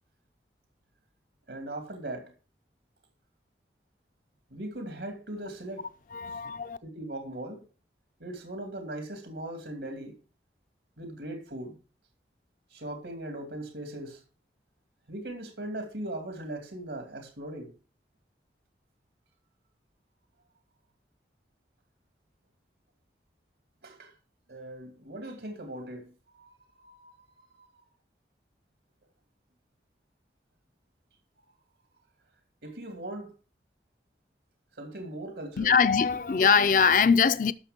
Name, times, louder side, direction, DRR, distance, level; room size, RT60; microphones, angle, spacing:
voice 1, 1.5-2.3 4.5-5.9 6.8-7.7 8.2-10.1 11.0-11.8 12.7-14.2 15.1-17.7 23.8-24.1 24.5-27.1 27.5-27.7 32.6-33.3 34.7-35.8, right 1 dB, 85° right, 2.6 m, -39 dB
voice 2, 6.1-6.8 35.6-37.5, left 6 dB, 45° left, 0.5 m, -22 dB
12.5 x 6.7 x 5.2 m
head